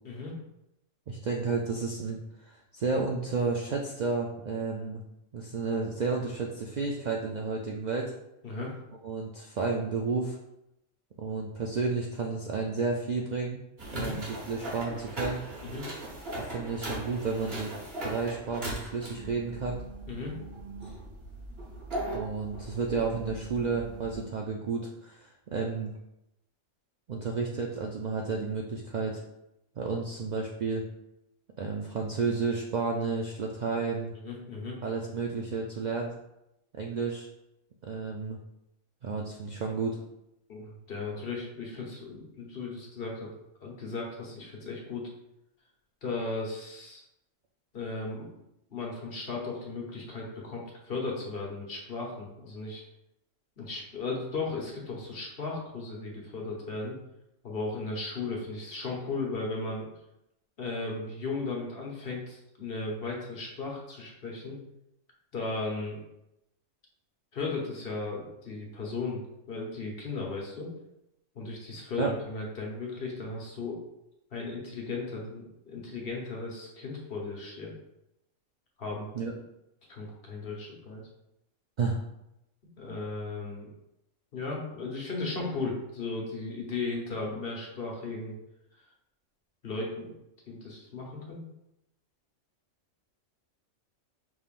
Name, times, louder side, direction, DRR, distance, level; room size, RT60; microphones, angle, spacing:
voice 1, 0.0-0.3 8.4-8.7 13.9-14.2 15.6-15.9 20.1-20.3 34.1-34.8 40.5-43.3 43.6-45.1 46.0-47.0 47.7-48.3 48.7-52.8 53.6-57.0 57.4-59.9 60.6-64.6 65.3-66.0 67.3-69.2 69.5-70.7 71.3-73.8 74.3-77.7 78.8-79.1 79.9-81.0 82.8-83.7 84.3-88.3 89.6-90.1 90.5-91.4, left 3 dB, 50° left, -2 dB, 1.1 m, -36 dB
voice 2, 1.1-2.2 2.5-5.0 5.3-8.1 9.0-10.4 11.2-13.6 13.9-15.4 16.4-17.7 18.0-19.8 20.8-20.9 22.1-25.9 27.1-29.2 29.8-30.9 31.6-34.1 34.8-36.1 36.8-37.3 37.8-38.4 39.0-40.0 72.0-72.1 79.1-79.3 81.8-82.0, right 4 dB, 85° right, 0 dB, 0.4 m, -31 dB
sound 1, 13.8-24.2, right 1 dB, 50° right, 1.5 m, -39 dB
5.5 x 3.5 x 2.4 m, 0.86 s
omnidirectional pair, 1.3 m